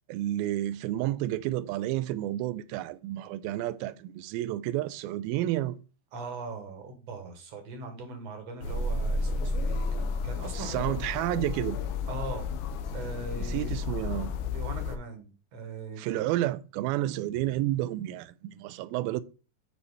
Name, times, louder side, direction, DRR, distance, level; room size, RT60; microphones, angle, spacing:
voice 1, 0.1-5.8 10.5-11.8 13.4-14.3 16.0-19.2, right 14 dB, 85° right, 2.4 m, -30 dB
voice 2, 6.1-10.9 12.1-12.5 12.9-13.7 14.5-16.2, right 3 dB, 55° right, 2.2 m, -40 dB
sound 1, 8.6-15.0, left 3 dB, 85° left, 2.6 m, -32 dB
8.6 x 4.3 x 4.1 m
omnidirectional pair, 4.3 m